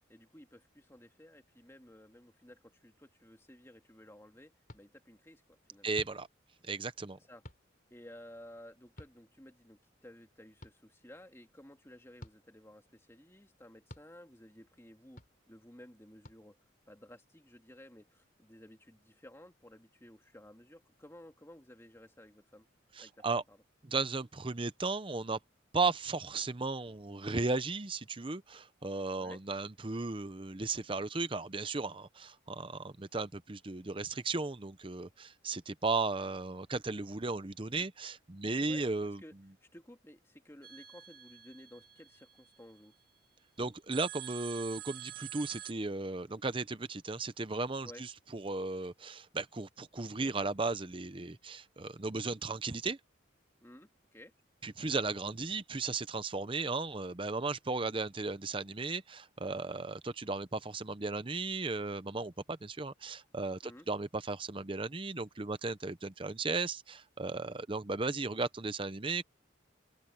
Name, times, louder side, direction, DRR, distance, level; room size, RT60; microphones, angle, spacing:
voice 1, 0.1-6.0 7.2-7.4 7.9-16.6 16.9-22.7 23.0-23.6 29.2-29.4 38.6-38.8 39.2-39.3 39.6-43.0 47.8-48.0 53.6-54.3 63.6-63.9, left 1 dB, 15° left, 2.3 m, -55 dB
sound 1, 4.7-4.8 5.9-6.2 7.4-7.6 9.0-9.1 10.6-10.7 12.2-12.4 13.9-14.1 15.2-15.3 16.2-16.4, equal, 45° left, 4.1 m, -49 dB
voice 2, 5.8-6.3 6.6-7.2 22.9-23.4 23.8-25.4 25.7-39.2 43.6-53.0 54.6-69.2, right 3 dB, 25° right, 0.7 m, -35 dB
sound 2, 40.6-42.9 43.9-45.7, right 13 dB, 50° right, 2.8 m, -47 dB
open air
head